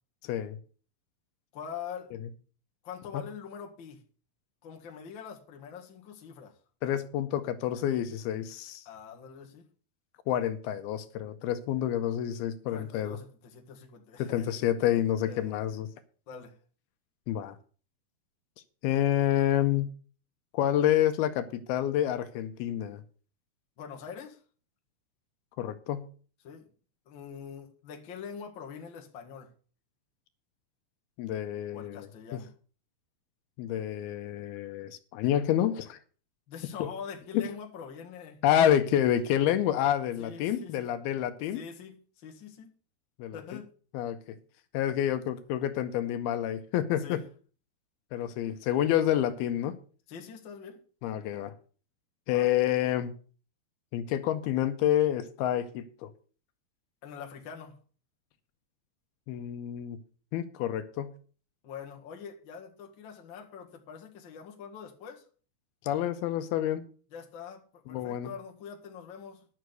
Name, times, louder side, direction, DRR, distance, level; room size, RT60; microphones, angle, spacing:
voice 1, 0.2-0.6 6.8-8.8 10.3-13.2 14.2-15.9 17.3-17.6 18.8-19.9 20.5-23.0 25.6-26.1 31.2-32.4 33.6-36.0 36.8-36.9 37.3-37.5 38.4-41.6 43.2-43.6 43.9-44.4 44.7-47.2 48.1-49.8 51.0-51.5 52.3-53.1 53.9-56.1 59.3-60.0 60.3-61.1 65.8-66.8 67.9-68.3, left 11 dB, 80° left, 2.6 m, -28 dB
voice 2, 1.5-2.1 2.8-4.0 4.6-6.6 8.9-9.7 12.7-14.5 15.2-15.6 16.3-16.6 23.8-24.4 26.4-26.7 27.1-29.5 31.7-32.5 36.5-38.4 40.2-40.9 41.5-42.7 43.3-43.7 46.9-47.2 50.1-50.8 52.3-52.5 57.0-57.8 61.6-65.3 67.1-69.5, left 7 dB, 45° left, 1.7 m, -44 dB
10.5 x 6.3 x 8.0 m
omnidirectional pair, 4.6 m